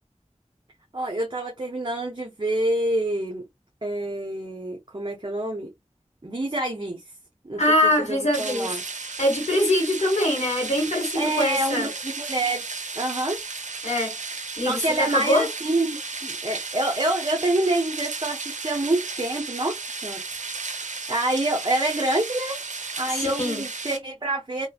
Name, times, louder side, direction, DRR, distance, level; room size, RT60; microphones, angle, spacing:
voice 1, 0.9-3.4 3.8-5.7 6.2-7.0 7.4-8.8 11.1-13.4 14.6-20.2 21.1-22.6 23.0-24.7, right 1 dB, 40° right, 0.8 m, -27 dB
voice 2, 7.6-8.7 9.0-11.9 13.8-14.2 14.6-15.5 23.1-23.6, left 1 dB, 70° left, 1.4 m, -23 dB
sound 1, 8.3-24.0, right 4 dB, 90° right, 0.5 m, -34 dB
3.0 x 2.4 x 2.2 m
wide cardioid pair, 45°, 12 cm